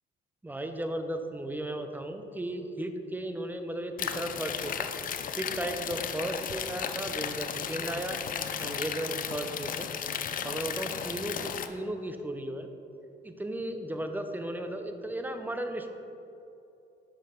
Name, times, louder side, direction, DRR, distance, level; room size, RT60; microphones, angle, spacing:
voice 1, 0.4-4.9 5.3-8.2 8.6-9.9 10.4-12.7 13.2-15.9, right 1 dB, 10° right, 6 dB, 0.5 m, -35 dB
sound 1, 4.0-11.7, left 8 dB, 45° left, 0.4 m, -35 dB
6.0 x 5.5 x 3.8 m, 2.9 s
cardioid pair, 90°, 20 cm